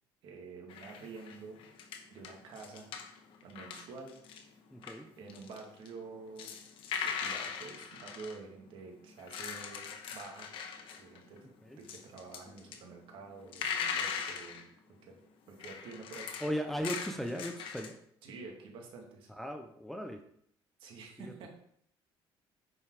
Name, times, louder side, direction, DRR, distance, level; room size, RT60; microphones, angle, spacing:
voice 1, 0.2-1.6 2.1-2.9 3.4-4.1 5.2-6.6 7.0-10.5 11.0-11.5 11.8-15.2 15.5-16.5 18.2-19.3 20.8-21.5, right 4 dB, 60° right, 1 dB, 2.4 m, -48 dB
sound 1, 0.7-4.4 4.8-8.4 9.1-11.4 11.7-12.8 13.2-14.6 15.6-17.9, left 6 dB, 60° left, 1.3 m, -40 dB
voice 2, 4.7-5.1 11.6-11.8 16.4-18.0 19.4-20.2 21.2-21.3, equal, 5° left, 4 dB, 0.7 m, -37 dB
10.0 x 5.4 x 4.9 m, 0.68 s
cardioid pair, 155°, 10 cm